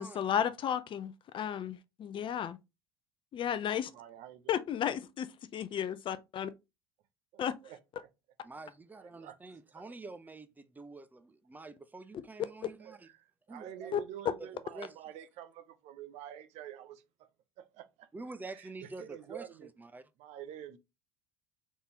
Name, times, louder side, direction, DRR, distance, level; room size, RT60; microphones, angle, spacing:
voice 1, 0.0-2.6 3.3-3.9 4.5-6.5 7.4-7.5 12.6-12.7 13.9-14.0, left 9 dB, 40° left, 0.6 m, -33 dB
voice 2, 3.9-4.6 7.3-8.1 8.9-9.4 9.7-10.0 12.8-17.3 17.6-18.1 18.5-19.7 20.2-20.8, right 11 dB, 55° right, 0.7 m, -48 dB
voice 3, 8.4-13.1 13.5-14.0 14.4-14.9 18.1-20.0, right 3 dB, 15° right, 0.6 m, -47 dB
4.0 x 3.7 x 2.9 m
hypercardioid pair, 70°, 13 cm